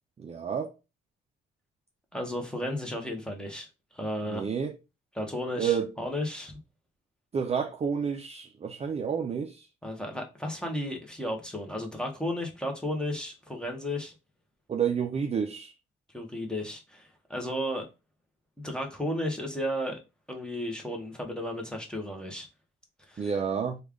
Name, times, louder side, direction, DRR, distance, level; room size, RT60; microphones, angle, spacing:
voice 1, 0.2-0.7 4.3-4.7 5.6-5.9 7.3-9.7 14.7-15.7 23.2-23.8, right 7 dB, 30° right, 0.5 m, -30 dB
voice 2, 2.1-3.7 3.9-4.5 5.1-6.5 9.8-14.1 16.1-17.8 18.6-20.0 20.3-22.5 23.1-23.3, left 1 dB, 5° left, 1.0 m, -34 dB
3.2 x 2.4 x 3.6 m
cardioid pair, 90°, 20 cm